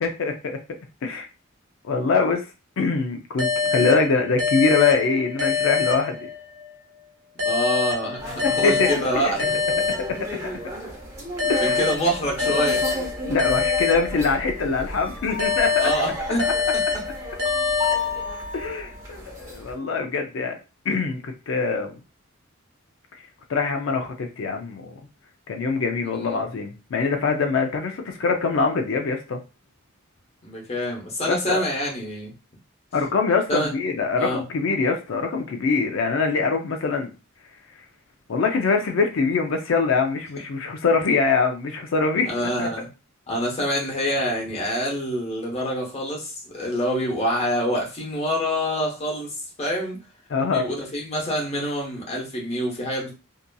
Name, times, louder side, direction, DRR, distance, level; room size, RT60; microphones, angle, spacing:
voice 1, 0.0-0.6 1.0-1.3 1.8-2.5 2.8-6.3 8.4-8.9 9.1-9.3 10.0-10.1 11.5-11.7 13.3-15.9 16.8-16.9 18.5-20.6 20.9-22.0 23.1-23.2 23.5-25.0 25.5-29.4 31.3-31.6 32.9-37.1 38.3-42.3 42.6-42.7 50.3-50.7, left 4 dB, 70° left, 4 dB, 0.4 m, -23 dB
sound 1, 3.4-6.7 7.4-10.7 11.4-14.7 15.4-18.7, left 5 dB, 85° right, 0.8 m, -26 dB
voice 2, 7.4-9.5 11.6-12.8 15.8-16.5 26.1-26.4 30.4-32.3 33.5-33.7 34.2-34.4 42.2-42.9 43.3-50.0 50.4-53.1, equal, 30° left, -1 dB, 0.9 m, -26 dB
sound 2, 8.2-19.7, left 1 dB, 15° right, 0.8 m, -33 dB
2.7 x 2.5 x 2.2 m, 0.30 s
head